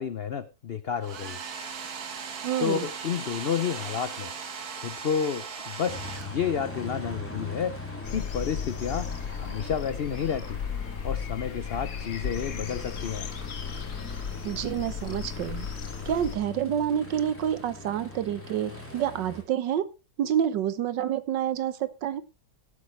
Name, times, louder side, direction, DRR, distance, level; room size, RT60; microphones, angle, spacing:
voice 1, 0.0-1.4 2.6-4.3 4.8-9.1 9.4-10.6 11.0-13.3, left 7 dB, 85° left, 13 dB, 0.5 m, -31 dB
Domestic sounds home sounds, 1.0-6.8, right 6 dB, 60° right, 1.8 m, -38 dB
voice 2, 2.4-2.9 14.4-15.7 16.1-19.9 20.2-22.2, right 10 dB, 85° right, 15 dB, 1.6 m, -28 dB
Aircraft, 5.9-19.4, left 3 dB, 5° left, 3.2 m, -40 dB
sound 1, 8.0-16.4, left 7 dB, 55° left, 1.4 m, -36 dB
16.5 x 8.3 x 3.2 m, 0.28 s
omnidirectional pair, 1.9 m